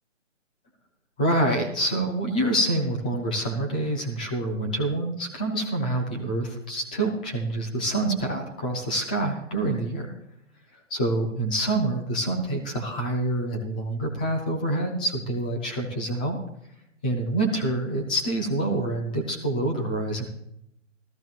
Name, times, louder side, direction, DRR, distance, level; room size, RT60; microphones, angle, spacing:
voice 1, 1.2-10.1 10.9-16.4 17.0-20.2, right 1 dB, 5° left, 1 dB, 0.4 m, -26 dB
16.5 x 13.5 x 2.4 m, 0.76 s
hypercardioid pair, 145°, 38 cm